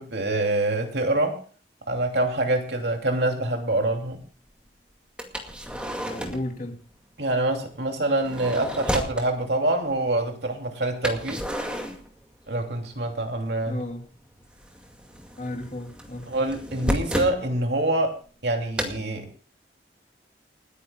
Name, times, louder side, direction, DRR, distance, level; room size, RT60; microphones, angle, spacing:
voice 1, 0.0-1.4 1.9-4.2 7.2-11.4 12.5-13.8 16.3-19.5, right 2 dB, 70° right, 2.8 m, -26 dB
sound 1, 5.2-6.5 8.0-9.3 11.0-12.7 13.0-13.8 14.1-17.4 18.8-19.0, equal, 5° right, 2.1 m, -32 dB
voice 2, 6.1-6.8 13.6-14.1 15.4-16.3, left 1 dB, 45° left, 3.0 m, -34 dB
29.5 x 9.9 x 2.3 m
head